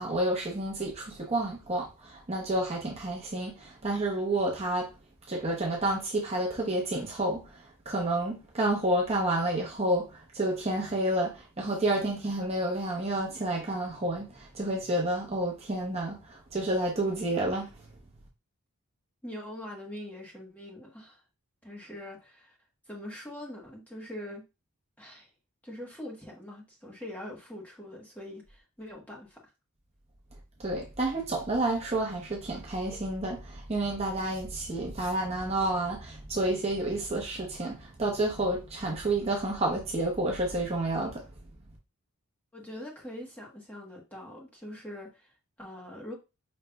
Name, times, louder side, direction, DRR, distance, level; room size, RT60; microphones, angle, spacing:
voice 1, 0.0-4.9 5.3-17.8 30.6-41.3, right 1 dB, 30° right, 0.8 m, -30 dB
voice 2, 19.2-21.2 21.6-22.6 22.9-24.4 25.0-25.3 25.6-29.4 42.5-46.1, left 1 dB, 5° left, 1.1 m, -43 dB
5.2 x 3.1 x 2.2 m
head